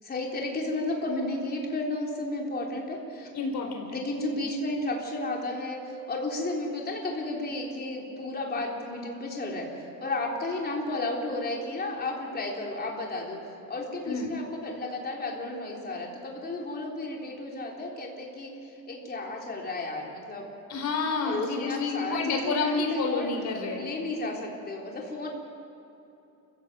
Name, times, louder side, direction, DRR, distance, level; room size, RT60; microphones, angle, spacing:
voice 1, 0.0-3.3 3.9-13.4 13.7-20.5 21.2-23.3 23.8-25.3, left 2 dB, 25° left, -1 dB, 3.8 m, -33 dB
voice 2, 3.3-4.0 14.0-14.3 20.7-23.8, left 4 dB, 50° left, 2 dB, 4.3 m, -29 dB
29.0 x 15.5 x 7.8 m, 2.9 s
cardioid pair, 160°, 35 cm